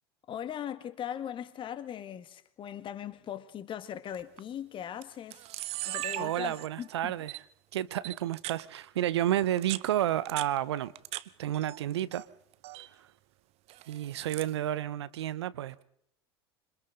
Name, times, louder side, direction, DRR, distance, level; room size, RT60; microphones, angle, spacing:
voice 1, 0.3-5.4 5.9-7.2, left 10 dB, 35° left, 1.8 m, -39 dB
Camera, 4.1-4.4 5.0-5.1 5.3-6.9 7.3-7.4 8.0-8.6 9.4-11.2 11.5-12.3 12.5-12.9 13.7-14.6, right 16 dB, 50° right, 0.9 m, -39 dB
voice 2, 6.2-7.4 7.7-10.9 11.4-12.3 12.8-13.1 13.9-15.8, right 12 dB, 75° right, 0.9 m, -31 dB
27.0 x 25.5 x 3.9 m
hypercardioid pair, 80°, 14 cm